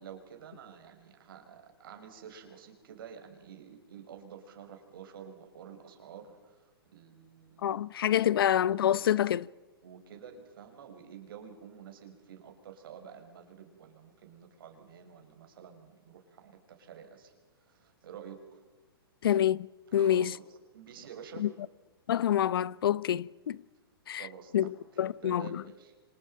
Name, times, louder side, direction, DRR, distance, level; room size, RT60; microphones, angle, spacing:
voice 1, 0.0-7.8 8.2-8.5 9.0-9.2 9.8-18.6 19.9-21.5 24.1-25.9, right 8 dB, 65° right, 6.2 m, -50 dB
voice 2, 7.6-9.5 19.2-19.7 19.9-20.4 21.4-21.5 22.1-23.6 24.1-24.3 24.5-25.6, left 10 dB, 70° left, 0.8 m, -27 dB
27.0 x 26.5 x 5.7 m
hypercardioid pair, 145°, 13 cm